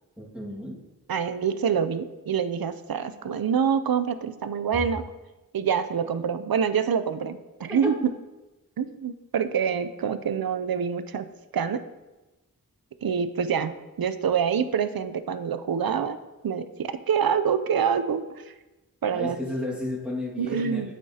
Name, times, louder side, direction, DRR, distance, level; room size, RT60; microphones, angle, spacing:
voice 1, 0.2-0.8 7.8-7.9 19.1-20.9, left 1 dB, 5° right, -5 dB, 1.9 m, -32 dB
voice 2, 1.1-5.0 5.5-7.9 8.8-11.3 11.5-11.8 13.0-16.2 16.4-18.5 19.0-19.4 20.4-20.9, right 7 dB, 75° right, 11 dB, 0.5 m, -26 dB
8.4 x 8.4 x 2.8 m, 1.1 s
wide cardioid pair, 40°, 36 cm